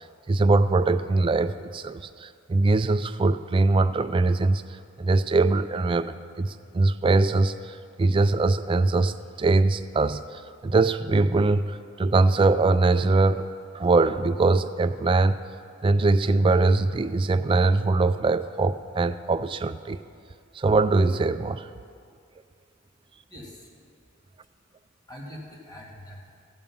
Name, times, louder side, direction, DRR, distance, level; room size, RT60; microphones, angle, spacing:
voice 1, 0.3-4.6 5.0-13.5 13.7-15.4 15.8-20.0 20.6-21.7, right 3 dB, 25° right, 11 dB, 0.3 m, -22 dB
voice 2, 23.3-23.9 24.4-24.8 25.1-26.4, left 1 dB, 20° left, -2 dB, 1.8 m, -44 dB
15.5 x 5.3 x 7.0 m, 2.3 s
head